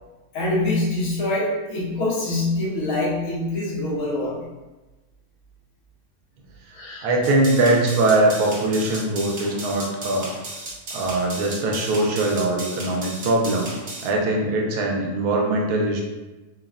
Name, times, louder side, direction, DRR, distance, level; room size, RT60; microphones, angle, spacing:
voice 1, 0.3-4.5 6.7-7.1, left 2 dB, 65° left, -6 dB, 1.1 m, -25 dB
voice 2, 7.0-10.3 10.9-13.7 14.0-16.0, right 2 dB, 80° right, 0 dB, 1.1 m, -21 dB
sound 1, 7.2-14.1, right 2 dB, 50° right, 0.8 m, -35 dB
3.4 x 2.0 x 2.4 m, 1.1 s
omnidirectional pair, 1.6 m